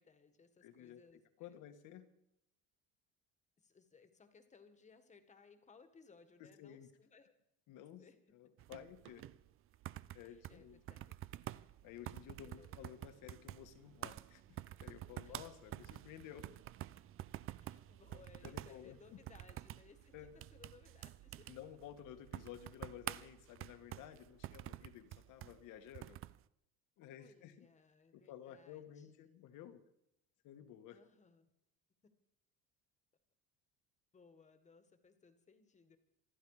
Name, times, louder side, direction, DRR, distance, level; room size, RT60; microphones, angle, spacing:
voice 1, 0.0-1.5 3.6-7.3 7.8-8.2 10.2-11.1 12.4-12.8 15.2-15.4 17.6-21.5 27.0-29.4 30.9-31.5 34.1-36.0, left 5 dB, 20° left, 9 dB, 1.8 m, -64 dB
voice 2, 0.6-1.0 1.4-2.1 6.4-6.9 7.7-8.0 8.3-9.2 10.1-10.8 11.8-16.5 18.4-19.2 20.1-20.4 21.5-26.2 27.0-27.7 28.1-29.8 30.4-31.0, left 10 dB, 65° left, 9 dB, 1.8 m, -53 dB
sound 1, 8.6-26.4, right 14 dB, 40° right, 0.5 m, -49 dB
27.0 x 10.5 x 5.0 m, 0.81 s
cardioid pair, 145°, 33 cm